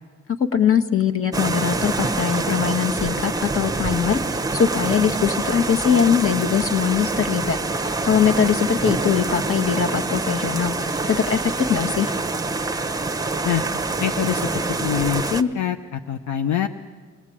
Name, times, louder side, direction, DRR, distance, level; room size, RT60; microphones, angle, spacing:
voice 1, 0.3-4.2 4.5-12.1, left 7 dB, 45° left, 6 dB, 1.6 m, -21 dB
sound 1, 1.3-15.4, right 3 dB, 10° right, 0.9 m, -26 dB
voice 2, 14.0-16.7, left 9 dB, 70° left, 7 dB, 0.9 m, -24 dB
24.5 x 18.0 x 8.7 m, 1.5 s
cardioid pair, 90°, 30 cm